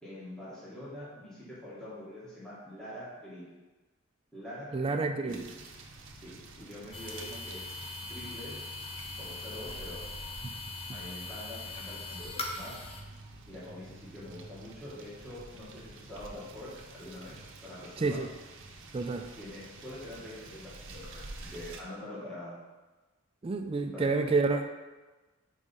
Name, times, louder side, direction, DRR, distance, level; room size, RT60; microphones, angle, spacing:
voice 1, 0.0-3.5 4.3-4.7 5.2-5.4 6.2-7.8 8.1-8.6 9.1-10.0 10.9-12.8 13.5-18.2 19.1-22.6 23.9-24.1, left 1 dB, 5° left, -11 dB, 1.7 m, -45 dB
voice 2, 4.7-5.5 10.4-10.5 18.0-18.3 18.9-19.3 23.4-24.7, right 3 dB, 25° right, 6 dB, 0.3 m, -29 dB
sound 1, 5.3-21.8, right 2 dB, 60° right, 0.7 m, -49 dB
sound 2, 6.9-13.0, left 2 dB, 25° left, 0.6 m, -41 dB
5.0 x 4.1 x 5.4 m, 1.2 s
head